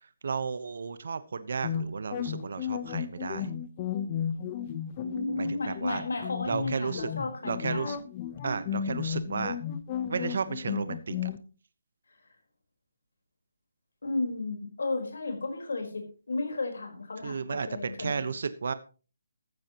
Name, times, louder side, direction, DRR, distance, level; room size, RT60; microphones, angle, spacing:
voice 1, 0.0-3.5 5.4-6.0 6.5-7.1 7.5-8.0 8.4-9.6 10.1-11.3 17.2-18.7, right 5 dB, 55° right, 13 dB, 1.1 m, -33 dB
sound 1, 1.6-11.4, left 8 dB, 25° left, 0.9 m, -34 dB
voice 2, 5.0-8.0 14.0-18.3, left 3 dB, 80° left, 4 dB, 4.4 m, -33 dB
15.0 x 13.0 x 3.0 m, 0.35 s
hypercardioid pair, 175°, 0 cm